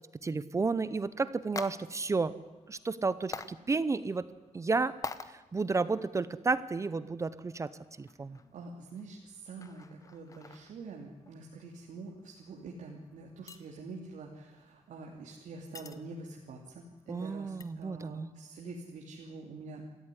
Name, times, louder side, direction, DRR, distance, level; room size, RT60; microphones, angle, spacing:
voice 1, 0.0-2.3 2.7-4.3 4.5-5.0 5.3-7.7 8.0-8.4 17.1-18.3, right 4 dB, 25° right, 16 dB, 0.7 m, -32 dB
sound 1, 0.9-17.6, left 4 dB, 25° left, 1.0 m, -50 dB
voice 2, 8.5-19.8, right 3 dB, 85° right, 0 dB, 2.9 m, -46 dB
28.0 x 14.0 x 10.0 m, 1.1 s
wide cardioid pair, 165°, 13 cm